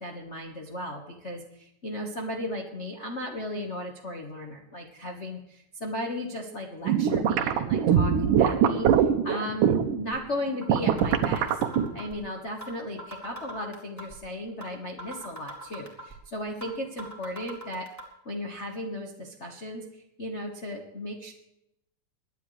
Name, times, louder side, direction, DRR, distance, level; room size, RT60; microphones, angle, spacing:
voice 1, 0.0-11.6 11.9-17.9 18.2-21.3, left 1 dB, 70° left, 0 dB, 0.6 m, -36 dB
sound 1, 6.9-10.0 10.5-11.9, right 8 dB, 80° right, 2.5 m, -22 dB
sound 2, 10.6-10.7 11.0-12.2 12.6-12.7 13.0-14.2 14.6-14.7 15.0-16.2 16.6-16.7 17.0-18.0, right 1 dB, 5° left, 2.7 m, -40 dB
23.5 x 10.5 x 3.3 m, 0.83 s
omnidirectional pair, 3.8 m